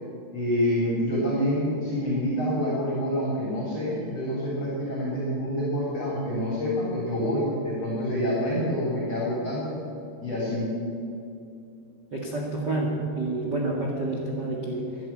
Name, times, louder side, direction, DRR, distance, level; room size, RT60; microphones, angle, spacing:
voice 1, 0.3-9.7 10.2-10.7, equal, 40° left, -5 dB, 3.7 m, -27 dB
voice 2, 12.1-14.9, right 2 dB, 60° right, -1 dB, 1.0 m, -28 dB
15.0 x 10.0 x 8.6 m, 2.6 s
omnidirectional pair, 4.9 m